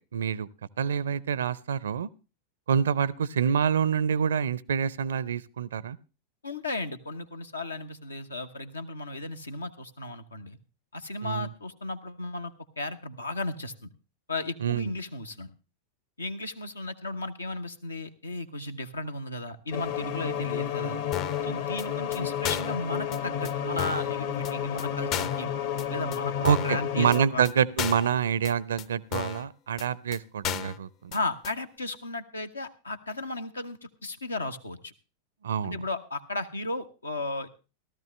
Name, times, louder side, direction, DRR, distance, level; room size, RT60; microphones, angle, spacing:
voice 1, 0.1-0.5 0.8-2.1 2.7-6.0 11.2-11.5 14.6-14.9 26.4-31.1 35.4-35.8, right 7 dB, 65° right, 23 dB, 0.5 m, -26 dB
voice 2, 6.4-10.6 10.9-13.9 14.3-15.5 16.2-21.0 21.4-25.5 25.9-27.5 31.1-34.9 35.6-37.5, left 2 dB, 75° left, 8 dB, 1.1 m, -35 dB
sound 1, 19.7-27.3, left 9 dB, 55° left, 1.4 m, -31 dB
sound 2, 21.1-21.4 21.8-21.9 22.1-22.2 22.4-22.8 23.1-23.2 23.4-23.5 23.8-24.1 24.4-24.5 24.8-24.9 25.1-25.4 25.8-25.9 26.1-26.2 26.4-26.8 27.1-27.2 27.4-27.5 27.8-28.1 28.4-28.5 28.8-28.9 29.1-29.4 29.8-29.9 30.1-30.2 30.4-30.8 31.1-31.2 31.4-31.5, left 9 dB, 40° left, 0.7 m, -33 dB
16.0 x 13.5 x 3.2 m, 0.33 s
figure-of-eight pair, 90°, 0 cm